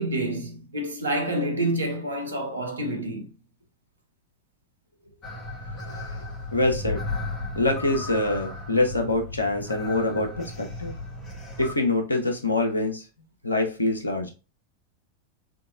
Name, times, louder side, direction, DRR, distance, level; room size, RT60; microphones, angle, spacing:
voice 1, 0.0-3.3, right 1 dB, 75° right, 0.8 m, -28 dB
sound 1, 5.2-11.7, left 2 dB, 25° left, 1.1 m, -35 dB
voice 2, 6.5-7.0 7.5-10.9 11.6-13.0 13.4-14.3, left 2 dB, 80° left, 0.7 m, -25 dB
3.7 x 2.9 x 2.4 m
figure-of-eight pair, 90°, 0 cm